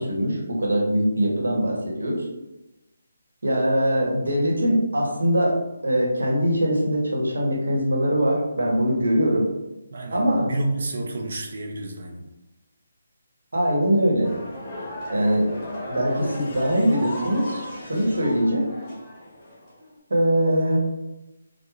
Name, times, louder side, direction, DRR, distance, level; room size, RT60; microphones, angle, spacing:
voice 1, 0.0-2.2 3.4-5.6 5.8-9.5 10.1-10.4 13.5-14.3 15.1-15.5 15.9-18.6 20.1-20.8, equal, 80° right, -2 dB, 1.1 m, -22 dB
voice 2, 9.9-12.3, right 2 dB, 60° right, 3 dB, 0.6 m, -30 dB
sound 1, 14.2-20.0, left 1 dB, 15° left, 1.2 m, -35 dB
4.6 x 2.2 x 2.4 m, 0.98 s
figure-of-eight pair, 155°, 0 cm